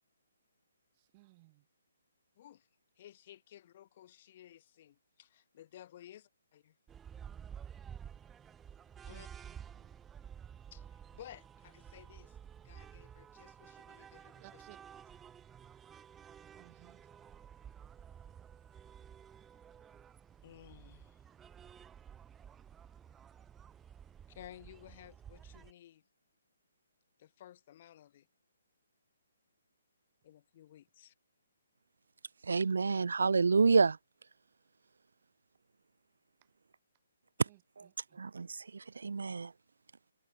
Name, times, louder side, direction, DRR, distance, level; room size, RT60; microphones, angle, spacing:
voice 1, 1.0-1.6 9.1-9.9 14.4-14.8 16.5-17.1 37.5-38.2, right 22 dB, 25° right, 1.8 m, -61 dB
voice 2, 2.4-2.7 3.0-6.8 9.1-9.3 10.7-12.4 12.6-14.6 20.4-21.2 24.3-26.0 27.2-28.3 30.2-31.1, left 12 dB, 35° left, 7.2 m, -55 dB
sound 1, 6.9-25.7, right 8 dB, 10° right, 2.4 m, -52 dB
voice 3, 32.5-34.0 38.2-38.5 39.0-39.5, right 4 dB, 85° right, 0.7 m, -27 dB
hypercardioid pair, 165°, 0 cm